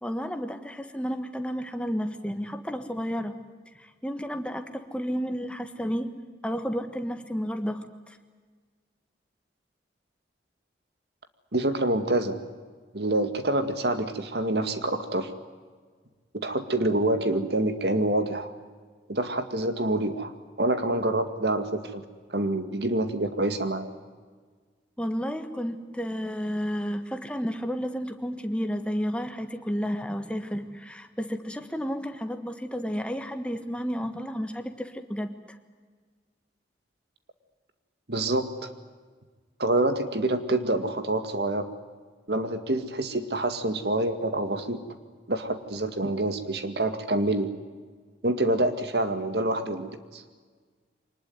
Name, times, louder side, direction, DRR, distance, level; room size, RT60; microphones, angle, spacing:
voice 1, 0.0-3.3 3.8-6.1 6.4-7.8 25.0-35.3, equal, 5° left, 7 dB, 1.5 m, -31 dB
voice 2, 11.5-12.4 12.9-15.3 16.3-18.5 19.1-20.3 20.6-22.0 22.3-23.9 38.1-38.7 39.6-41.7 42.3-44.8 45.3-47.5 48.2-50.2, right 1 dB, 65° right, 9 dB, 2.1 m, -26 dB
24.0 x 20.0 x 9.6 m, 1.5 s
head